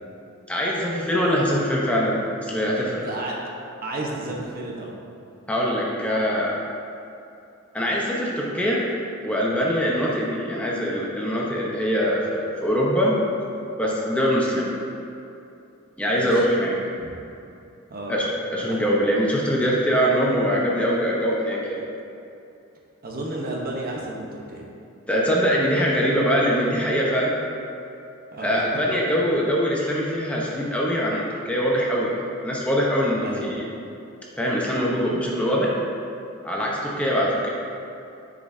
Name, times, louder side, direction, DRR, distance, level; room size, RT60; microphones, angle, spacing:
voice 1, 0.5-3.0 5.5-6.6 7.7-8.9 9.2-13.2 13.8-14.7 16.0-16.7 18.1-21.9 25.1-27.4 28.4-33.6 34.4-35.7 36.4-37.5, equal, 5° left, -4 dB, 0.8 m, -23 dB
voice 2, 3.0-3.3 3.8-4.9 16.1-16.3 17.0-17.1 17.9-18.2 18.7-18.9 23.0-24.7 28.3-28.6 28.9-29.2 33.2-33.5, right 2 dB, 45° right, -2 dB, 1.0 m, -32 dB
10.5 x 5.1 x 2.7 m, 2.6 s
head